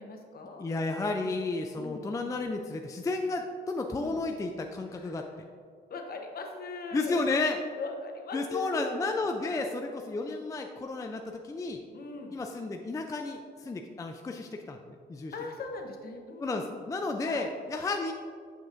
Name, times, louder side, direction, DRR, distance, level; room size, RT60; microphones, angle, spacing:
voice 1, 0.0-0.6 1.8-2.1 4.0-4.2 4.9-5.2 5.9-7.2 7.8-9.1 9.4-9.8 11.9-12.4 15.3-16.7 17.2-17.5, left 3 dB, 50° left, 3 dB, 0.9 m, -40 dB
voice 2, 0.6-5.3 6.9-7.6 8.3-11.8 12.3-15.3 16.4-18.1, left 3 dB, 15° left, 4 dB, 0.4 m, -32 dB
6.8 x 6.0 x 2.5 m, 2.1 s
cardioid pair, 90°, 20 cm